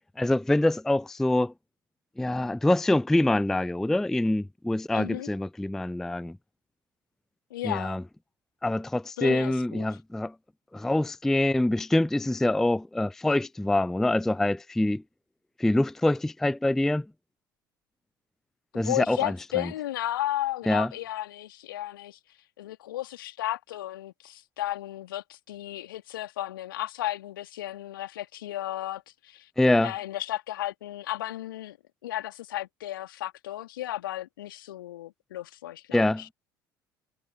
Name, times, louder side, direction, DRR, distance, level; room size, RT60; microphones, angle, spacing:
voice 1, 0.2-1.5 2.2-6.4 7.6-8.0 8.6-10.3 10.7-15.0 15.6-17.1 18.7-19.7 20.7-20.9 29.6-29.9 35.9-36.2, left 1 dB, 5° left, 0.3 m, -25 dB
voice 2, 4.9-5.3 7.5-8.0 9.2-10.0 18.7-22.2 22.6-29.5 29.8-31.8 32.0-36.3, left 14 dB, 70° left, 2.4 m, -34 dB
figure-of-eight pair, 60°, 12 cm